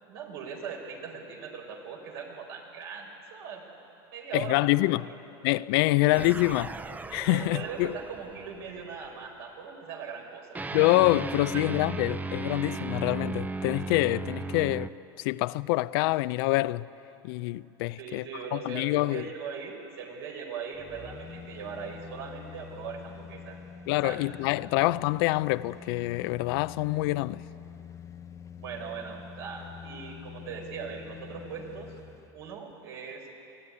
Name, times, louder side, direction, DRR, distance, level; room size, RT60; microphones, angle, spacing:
voice 1, 0.0-3.8 4.1-4.7 7.3-10.6 11.5-11.9 18.0-23.6 24.0-24.2 24.7-24.8 28.6-31.9 32.3-33.3, right 6 dB, 75° right, 4.6 m, -40 dB
voice 2, 4.3-5.1 5.4-6.8 7.1-7.9 10.7-14.9 15.2-16.9 17.2-18.2 18.5-19.3 23.9-27.4, left 19 dB, 65° left, 0.5 m, -26 dB
sound 1, 6.1-8.9 10.5-14.9, right 3 dB, 10° right, 0.6 m, -36 dB
sound 2, 20.7-32.3 32.7-32.8, left 7 dB, 25° left, 0.8 m, -46 dB
22.5 x 15.5 x 9.8 m
supercardioid pair, 110°, 13 cm